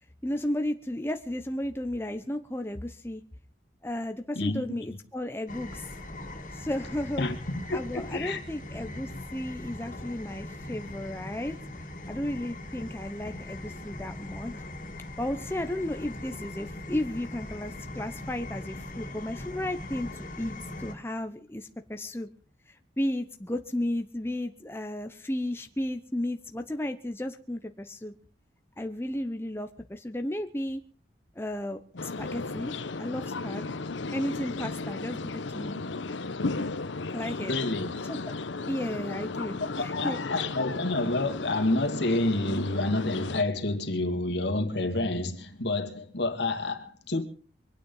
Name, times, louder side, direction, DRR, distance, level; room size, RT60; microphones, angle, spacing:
voice 1, 0.2-3.2 3.8-5.9 6.5-7.2 7.7-11.5 12.1-14.5 15.2-22.3 22.7-28.1 28.8-30.8 31.4-32.7 33.0-33.7 34.1-35.8 37.1-37.5 38.1-38.2 38.7-40.2, left 1 dB, 15° left, 0.8 m, -34 dB
voice 2, 4.4-4.8 7.2-8.4 37.4-37.9 39.6-47.2, left 2 dB, 70° left, 2.3 m, -29 dB
sound 1, 5.5-20.9, left 1 dB, 45° left, 2.8 m, -40 dB
sound 2, 32.0-43.4, left 3 dB, 90° left, 0.9 m, -35 dB
24.5 x 9.3 x 5.5 m
head